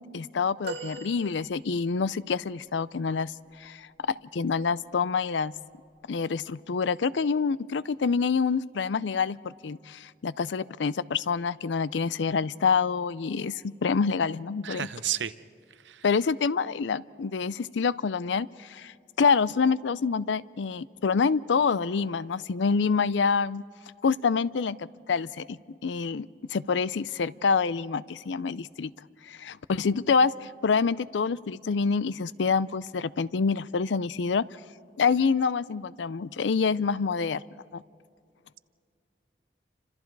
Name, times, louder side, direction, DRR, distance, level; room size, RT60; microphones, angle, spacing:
voice 1, 0.1-3.3 3.6-5.5 6.1-14.9 16.0-23.6 24.0-28.9 29.3-34.5 35.0-37.4 37.7-37.8, left 5 dB, 90° left, 18 dB, 0.5 m, -27 dB
sound 1, 0.6-2.1 4.4-4.6 5.9-6.0, right 3 dB, 65° right, 2.7 m, -41 dB
voice 2, 14.6-15.3 15.8-16.0, right 10 dB, 90° right, 13 dB, 0.7 m, -31 dB
29.5 x 26.0 x 4.7 m, 2.3 s
head